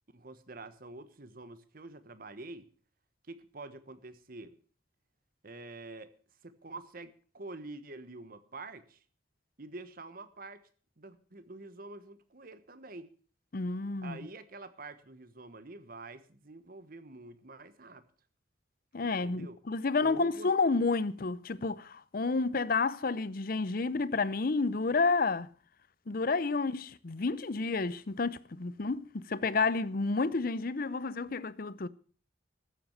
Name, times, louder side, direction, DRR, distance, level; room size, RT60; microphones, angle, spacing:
voice 1, 0.1-2.7 3.3-4.5 5.4-6.1 6.4-9.0 9.6-10.6 11.0-13.1 14.0-18.0 19.0-19.6 20.0-20.5, right 2 dB, 55° right, 1.2 m, -47 dB
voice 2, 13.5-14.2 18.9-25.5 26.1-31.9, left 4 dB, 55° left, 0.7 m, -30 dB
14.0 x 7.6 x 8.0 m
head